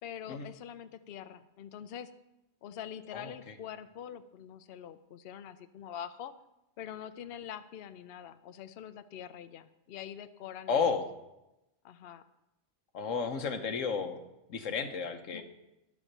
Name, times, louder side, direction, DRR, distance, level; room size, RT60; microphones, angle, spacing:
voice 1, 0.0-2.1 2.6-6.3 6.8-11.0 11.8-12.2 15.3-15.4, left 9 dB, 60° left, 11 dB, 0.7 m, -44 dB
voice 2, 3.1-3.5 10.7-11.1 12.9-14.2 14.5-15.4, left 5 dB, 90° left, 7 dB, 1.4 m, -32 dB
11.5 x 7.2 x 6.7 m, 0.94 s
omnidirectional pair, 1.3 m